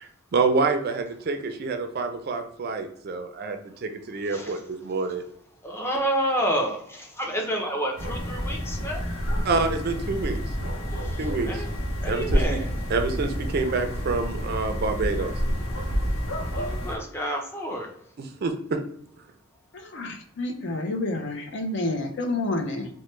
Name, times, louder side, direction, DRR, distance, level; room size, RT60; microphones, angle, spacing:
voice 1, 0.0-5.2 9.4-10.4 11.2-11.6 12.1-12.6 12.9-15.3 18.4-18.8, right 4 dB, 50° right, 7 dB, 0.4 m, -27 dB
voice 2, 4.3-4.6 5.6-9.0 10.9-11.7 12.0-12.7 16.5-17.9, equal, 10° left, 0 dB, 0.6 m, -29 dB
sound 1, 8.0-17.0, equal, 90° left, 0.8 m, -29 dB
voice 3, 19.7-22.9, left 2 dB, 60° left, 4 dB, 0.5 m, -29 dB
3.1 x 2.1 x 3.1 m, 0.67 s
head